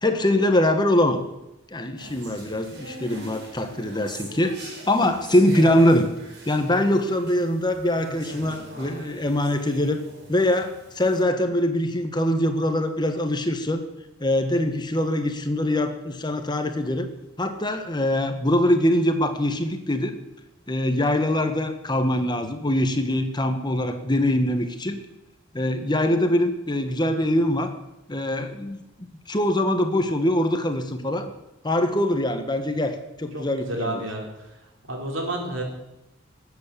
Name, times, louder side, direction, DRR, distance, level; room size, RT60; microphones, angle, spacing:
voice 1, 0.0-1.2 1.7-6.1 6.5-10.0 10.3-13.8 14.2-17.1 17.4-20.2 20.7-25.0 25.5-27.7 28.1-28.8 29.3-31.3 31.6-34.1, left 1 dB, 20° left, 7 dB, 1.3 m, -23 dB
sound 1, 2.0-11.2, right 1 dB, 55° right, 4.6 m, -42 dB
voice 2, 33.3-34.5 34.9-35.6, right 1 dB, 75° right, 1 dB, 4.4 m, -30 dB
19.5 x 8.4 x 8.5 m, 0.91 s
head